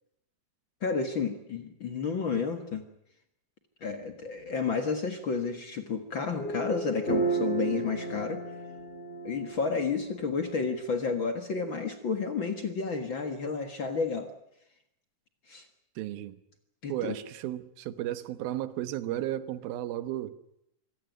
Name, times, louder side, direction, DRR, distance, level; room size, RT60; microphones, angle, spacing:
voice 1, 0.8-2.8 3.8-8.4 9.2-14.3 15.5-15.7 16.8-17.2, left 5 dB, 45° left, 1.8 m, -31 dB
sound 1, 6.3-10.8, right 4 dB, 15° left, 7.6 m, -33 dB
voice 2, 16.0-16.4 16.9-20.4, right 13 dB, 85° right, 3.0 m, -34 dB
25.5 x 16.5 x 9.3 m
omnidirectional pair, 4.2 m